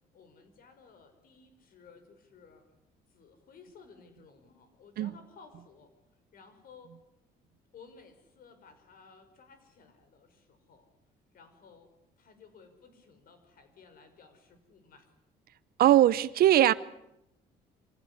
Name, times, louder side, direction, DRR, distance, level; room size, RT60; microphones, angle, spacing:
voice 1, 0.1-2.7 3.1-5.9 6.3-6.9 7.7-10.9 11.3-15.1, left 5 dB, 60° left, 5.5 m, -56 dB
voice 2, 15.8-16.7, right 13 dB, 65° right, 0.9 m, -20 dB
25.0 x 16.0 x 9.7 m
cardioid pair, 110°, 17 cm